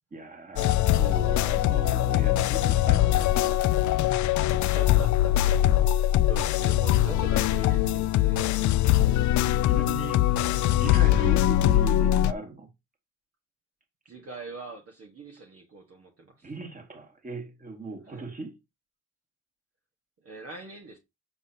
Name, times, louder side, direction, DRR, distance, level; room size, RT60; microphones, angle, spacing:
voice 1, 0.1-3.6 9.1-9.2 9.6-12.7 16.4-18.5, right 3 dB, 25° right, 2.0 m, -38 dB
sound 1, 0.6-12.3, left 13 dB, 75° left, 0.5 m, -22 dB
voice 2, 4.5-8.5 14.1-16.5 18.1-18.2 20.2-21.0, right 3 dB, 50° right, 1.7 m, -43 dB
7.7 x 5.7 x 2.9 m
cardioid pair, 90°, 30 cm